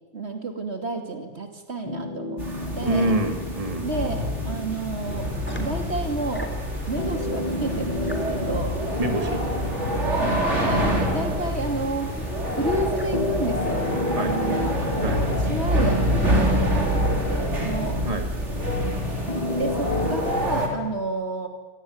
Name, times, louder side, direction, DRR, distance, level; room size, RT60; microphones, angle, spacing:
voice 1, 0.1-2.4 2.8-3.2 3.8-5.3 5.6-6.6 6.9-8.8 10.2-12.1 12.5-13.9 14.2-18.0 19.5-21.5, right 2 dB, 65° right, 5 dB, 2.9 m, -31 dB
sound 1, 1.8-20.3, left 2 dB, 35° left, 2.0 m, -35 dB
sound 2, 2.4-20.7, equal, 85° right, 4.3 m, -26 dB
voice 2, 2.8-4.2 9.0-9.4 14.2-14.3 15.0-15.2 18.0-18.3, right 1 dB, 30° right, 5 dB, 2.4 m, -26 dB
sound 3, 5.1-13.1, equal, 10° left, 3.6 m, -35 dB
26.5 x 17.5 x 9.5 m, 1.3 s
omnidirectional pair, 1.2 m